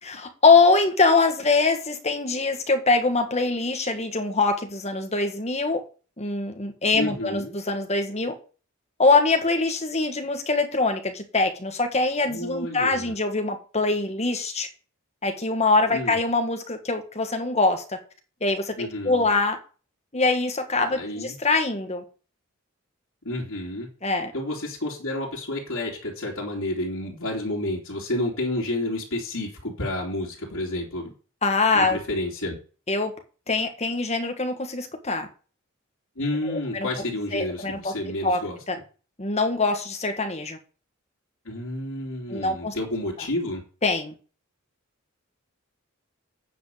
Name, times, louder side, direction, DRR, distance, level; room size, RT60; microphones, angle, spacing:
voice 1, 0.0-5.8 6.2-8.3 9.0-14.7 15.2-18.0 18.4-19.6 20.1-22.0 24.0-24.3 31.4-32.0 32.9-33.1 33.5-35.3 36.5-36.9 37.3-37.9 38.2-38.4 38.7-38.8 39.2-40.6 42.3-42.7 43.8-44.1, left 3 dB, 30° left, 1.6 m, -23 dB
voice 2, 6.9-7.5 12.2-13.1 15.9-16.2 18.8-19.2 20.9-21.4 23.2-23.9 24.3-31.1 31.7-32.6 36.2-38.6 41.4-43.6, left 1 dB, 85° left, 3.1 m, -30 dB
9.3 x 5.3 x 7.8 m
head